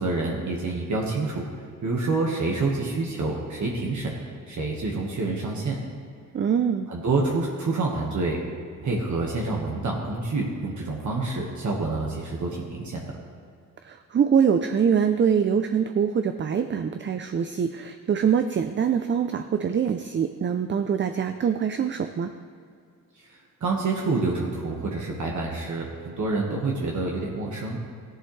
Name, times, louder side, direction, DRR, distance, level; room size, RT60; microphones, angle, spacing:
voice 1, 0.0-1.4 1.8-4.1 4.5-5.8 6.9-8.4 8.8-13.1 23.1-27.8, right 3 dB, 60° right, -2 dB, 1.5 m, -27 dB
voice 2, 6.3-6.9 13.8-22.3, right 7 dB, 35° right, 8 dB, 0.5 m, -24 dB
14.5 x 11.0 x 3.2 m, 2.3 s
cardioid pair, 90°, 34 cm